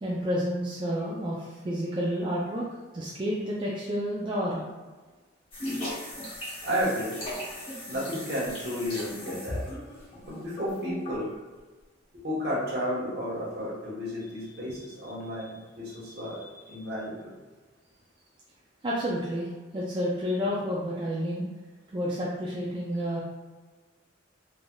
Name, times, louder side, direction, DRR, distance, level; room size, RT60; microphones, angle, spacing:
voice 1, 0.0-2.7 2.9-4.7 14.7-14.8 18.8-21.4 21.9-23.2, equal, 25° right, -6 dB, 0.3 m, -30 dB
sound 1, 5.5-11.3, left 1 dB, 30° left, 0.8 m, -37 dB
voice 2, 6.6-7.2 7.9-9.6 10.3-11.3 12.1-17.4, equal, 55° right, -6 dB, 1.1 m, -32 dB
3.3 x 2.5 x 2.2 m, 1.3 s
head